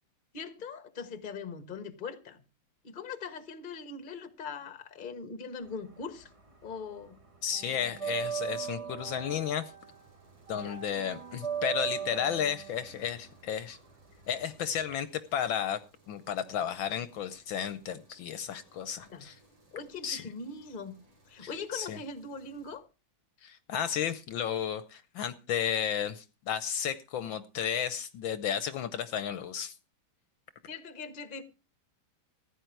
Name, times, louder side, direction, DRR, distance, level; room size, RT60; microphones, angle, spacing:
voice 1, 0.3-2.4 2.8-6.3 6.6-7.2 10.5-10.8 19.0-19.3 19.7-21.0 21.3-22.9 30.7-31.4, left 5 dB, 30° left, 1.1 m, -41 dB
sound 1, 5.7-6.8 7.0-14.9, right 8 dB, 30° right, 0.6 m, -38 dB
voice 2, 7.4-9.7 10.5-13.8 14.3-15.8 16.1-19.3 20.0-20.3 21.4-22.0 23.4-29.7, left 9 dB, 70° left, 1.4 m, -33 dB
sound 2, 9.8-22.8, right 2 dB, 90° right, 4.7 m, -63 dB
15.0 x 9.5 x 4.5 m
omnidirectional pair, 2.4 m